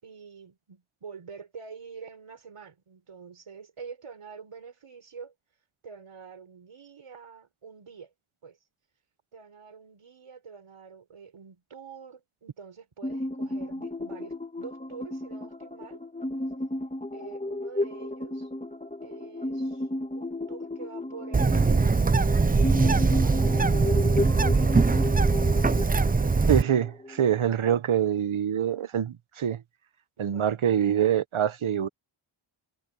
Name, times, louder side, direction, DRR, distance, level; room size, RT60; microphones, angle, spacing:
voice 1, 0.0-5.3 5.8-8.1 8.4-8.6 9.3-16.0 17.1-18.5 19.0-19.9 20.1-22.0 22.7-23.4 23.7-25.0 25.7-26.3 30.2-30.4, right 6 dB, 90° right, 4.9 m, -46 dB
sound 1, 13.0-27.4, left 1 dB, 15° left, 2.9 m, -33 dB
Bird, 21.3-26.6, right 4 dB, 20° right, 0.5 m, -22 dB
voice 2, 26.5-29.6 30.2-31.9, right 9 dB, 70° right, 1.0 m, -25 dB
wide cardioid pair, 105°, 50 cm